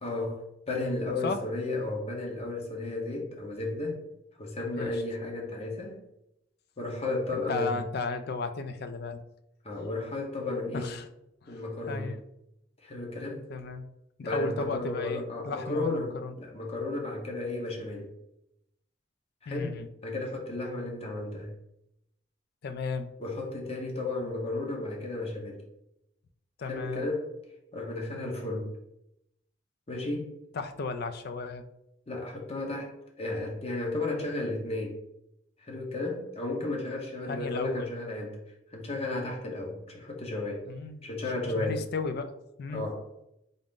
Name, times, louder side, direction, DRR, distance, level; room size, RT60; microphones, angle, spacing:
voice 1, 0.0-4.0 4.4-6.0 6.8-7.8 9.6-10.9 11.5-12.1 12.8-13.4 14.2-18.1 19.4-19.8 20.0-21.5 23.2-25.6 26.6-27.3 27.7-28.8 29.9-30.3 32.1-35.0 35.6-38.4 38.7-40.6 41.0-41.8 42.7-43.0, left 2 dB, 35° left, 0 dB, 0.8 m, -33 dB
voice 2, 7.3-9.2 10.7-11.1 11.4-11.6 11.9-12.2 13.5-13.9 14.2-16.4 19.5-19.9 22.6-23.1 26.6-27.1 30.5-31.6 37.3-37.9 40.7-41.1 41.3-42.8, left 4 dB, 55° left, 10 dB, 0.4 m, -34 dB
4.0 x 2.5 x 3.6 m, 0.82 s
head